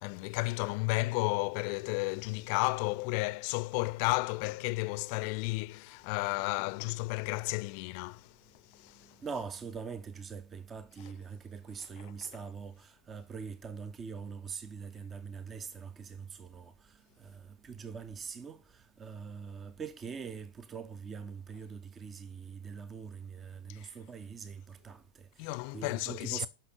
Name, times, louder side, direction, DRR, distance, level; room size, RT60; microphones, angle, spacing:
voice 1, 0.0-9.2 12.0-12.4 23.7-23.9 25.4-26.5, left 24 dB, 45° left, 0.7 m, -33 dB
voice 2, 8.9-26.5, right 6 dB, 20° right, 0.9 m, -43 dB
11.5 x 6.0 x 5.7 m
figure-of-eight pair, 90°, 0 cm